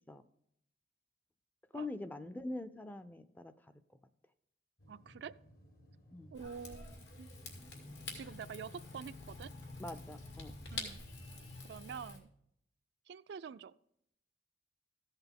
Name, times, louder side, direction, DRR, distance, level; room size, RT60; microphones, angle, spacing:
voice 1, 1.7-3.7 6.1-6.3 9.8-10.5, left 2 dB, 10° left, 11 dB, 0.4 m, -44 dB
sound 1, 4.8-11.5, equal, 55° left, 1.3 m, -60 dB
voice 2, 4.9-5.3 6.3-7.3 8.1-9.5 10.7-11.0 11.6-12.3 13.1-13.7, right 6 dB, 65° right, 14 dB, 0.3 m, -47 dB
Rain / Fire, 6.3-12.2, left 3 dB, 75° left, 2.3 m, -47 dB
14.0 x 8.1 x 3.6 m, 0.73 s
head